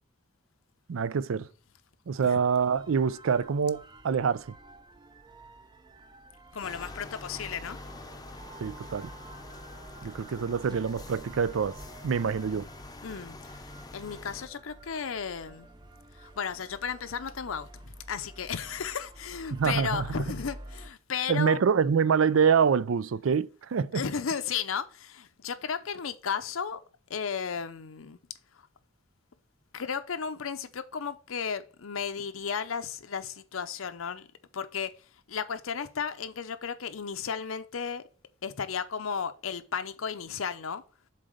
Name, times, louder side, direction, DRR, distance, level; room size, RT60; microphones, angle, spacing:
voice 1, 0.9-1.5 2.1-4.5 8.6-9.1 10.0-11.7 12.0-12.7 19.5-20.0 21.3-24.0, right 6 dB, 75° right, 0.4 m, -26 dB
sound 1, 2.5-20.9, right 1 dB, 20° right, 0.6 m, -49 dB
voice 2, 6.5-7.8 13.0-13.6 13.9-15.7 16.1-21.6 23.9-26.8 27.1-28.2 29.7-34.3 34.5-34.9 35.3-38.0 38.4-40.8, left 6 dB, 85° left, 0.7 m, -34 dB
sound 2, 6.6-14.5, left 2 dB, 20° left, 0.7 m, -45 dB
7.4 x 4.0 x 6.5 m
head